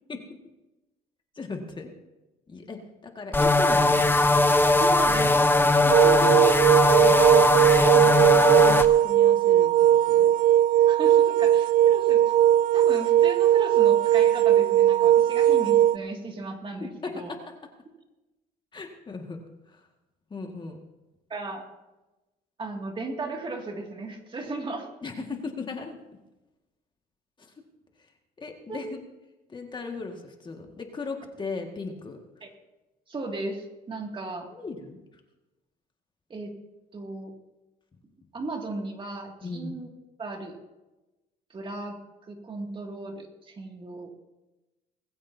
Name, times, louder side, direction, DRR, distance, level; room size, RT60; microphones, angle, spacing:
voice 1, 1.4-1.9 2.5-4.1 5.8-9.7 10.1-10.3 16.8-17.4 18.7-19.4 19.7-19.8 20.3-20.8 25.0-26.0 27.4-27.5 28.4-29.0 29.5-32.2 34.5-35.0 39.4-39.8, left 4 dB, 30° left, 3 dB, 1.9 m, -37 dB
sound 1, 3.3-8.9, left 2 dB, 10° left, 0.9 m, -20 dB
voice 2, 4.8-5.5 6.2-6.3 7.9-8.3 10.9-12.3 12.7-17.3 21.3-21.7 22.6-24.9 28.7-28.8 32.4-32.5 33.1-34.5 36.3-36.5 36.9-37.3 38.3-39.9 40.2-40.6 41.5-44.1, right 2 dB, 30° right, 2 dB, 2.4 m, -36 dB
sound 2, 5.9-16.0, right 12 dB, 55° right, 0.5 m, -19 dB
20.5 x 15.5 x 2.8 m, 1.0 s
cardioid pair, 110°, 17 cm